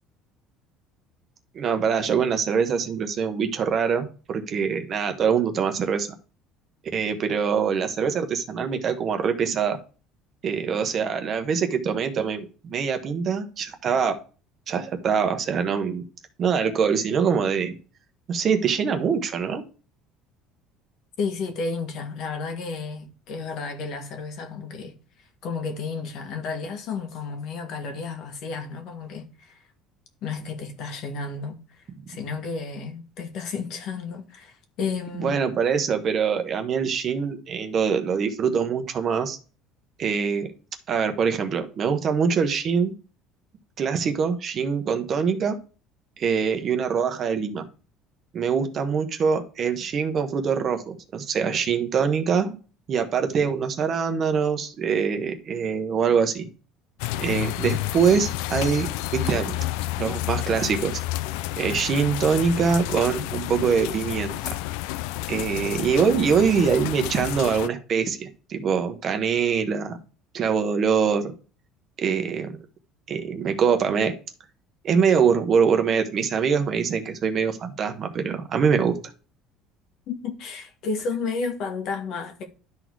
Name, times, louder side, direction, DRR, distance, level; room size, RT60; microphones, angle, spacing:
voice 1, 1.5-6.1 6.9-9.8 10.4-14.2 14.7-16.0 16.4-17.8 18.3-19.6 35.1-39.4 40.0-40.5 40.9-42.9 43.8-45.6 46.2-47.7 48.3-52.6 52.9-56.5 57.2-59.6 60.0-60.9 61.6-64.6 65.3-70.0 70.3-71.3 72.0-72.6 73.1-74.1 74.8-79.0, right 6 dB, 35° right, 1.0 m, -24 dB
voice 2, 21.2-24.9 25.4-29.6 30.2-31.6 32.1-35.4 80.1-82.4, left 4 dB, 55° left, 1.6 m, -32 dB
sound 1, 57.0-67.7, left 16 dB, 90° left, 0.4 m, -30 dB
12.0 x 4.1 x 4.7 m
cardioid pair, 150°, 0 cm